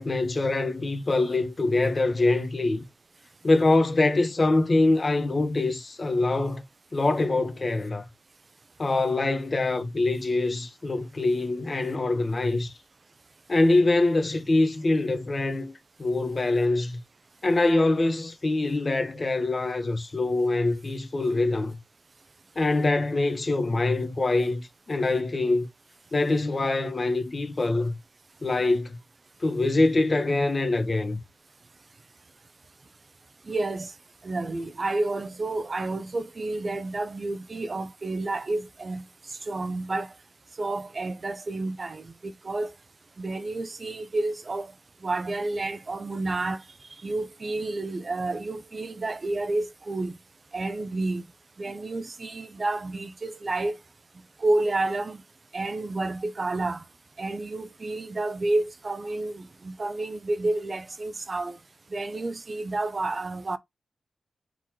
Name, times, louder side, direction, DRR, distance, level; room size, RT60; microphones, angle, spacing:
voice 1, 0.0-2.8 3.4-6.6 6.9-8.1 8.8-12.7 13.5-15.7 16.0-17.0 17.4-21.8 22.6-25.7 26.1-27.9 28.4-29.0 29.4-31.2, left 2 dB, 40° left, 1.0 m, -24 dB
voice 2, 33.5-33.9 34.2-39.0 39.5-40.1 40.6-42.7 43.2-44.7 45.0-46.6 47.0-50.2 50.5-51.2 51.6-53.8 54.4-55.2 55.5-56.8 57.2-61.6 61.9-63.6, right 2 dB, 40° right, 0.6 m, -30 dB
3.8 x 3.0 x 4.4 m
wide cardioid pair, 85°, 0 cm